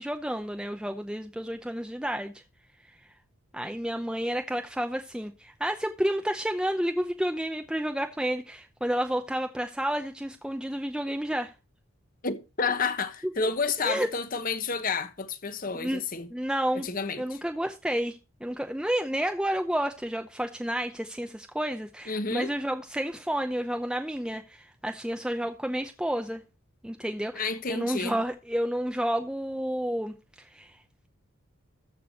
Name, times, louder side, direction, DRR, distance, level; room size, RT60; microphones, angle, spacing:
voice 1, 0.0-2.3 3.5-11.5 13.4-13.5 13.8-14.1 15.7-16.0 16.3-16.9 17.2-26.4 26.8-30.8, equal, 5° right, 0.6 m, -30 dB
voice 2, 12.2-16.3 16.8-17.4 22.1-22.5 27.3-28.2, left 4 dB, 40° left, 1.1 m, -30 dB
14.0 x 4.7 x 6.6 m
head